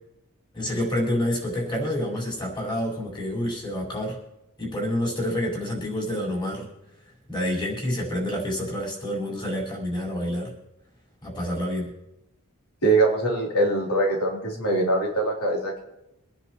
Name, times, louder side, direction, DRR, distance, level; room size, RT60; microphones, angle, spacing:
voice 1, 0.5-4.2 4.6-6.7 7.0-10.5 11.2-11.9, left 1 dB, 20° left, -2 dB, 5.0 m, -28 dB
voice 2, 12.8-15.8, right 2 dB, 90° left, -2 dB, 3.4 m, -23 dB
25.5 x 10.0 x 3.1 m, 0.86 s
head